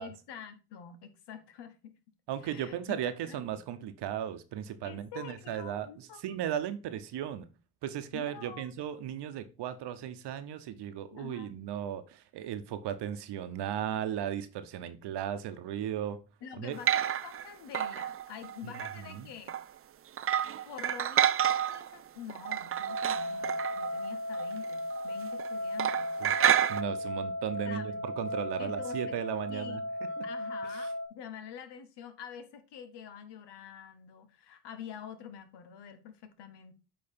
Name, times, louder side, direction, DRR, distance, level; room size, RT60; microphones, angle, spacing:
voice 1, 0.0-1.9 2.4-3.7 4.8-6.2 8.1-8.7 11.1-11.6 16.4-19.5 20.6-26.1 27.6-28.1 28.6-29.1 29.5-29.8 30.2-36.7, left 8 dB, 75° left, 1.2 m, -46 dB
voice 2, 2.3-7.5 7.8-16.2 16.6-16.8 18.6-19.3 26.2-29.8, right 10 dB, 70° right, 0.9 m, -36 dB
sound 1, 16.7-17.5 17.7-19.1 19.5-19.6 20.2-21.9 22.3-24.6 24.9-25.1 25.3-25.5 25.8-26.8, right 10 dB, 35° right, 0.4 m, -29 dB
sound 2, 22.8-31.1, left 1 dB, 25° left, 3.1 m, -36 dB
8.6 x 3.2 x 4.3 m
hypercardioid pair, 50°, 41 cm